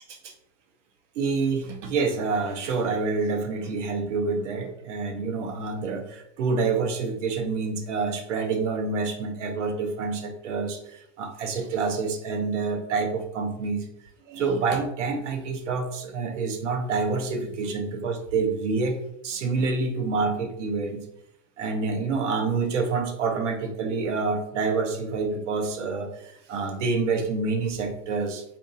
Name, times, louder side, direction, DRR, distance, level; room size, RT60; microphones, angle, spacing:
voice 1, 1.2-13.9 14.3-19.0 19.2-21.1 21.6-28.4, right 4 dB, 65° right, 5 dB, 0.8 m, -27 dB
3.9 x 2.6 x 2.6 m, 0.78 s
supercardioid pair, 150°, 39 cm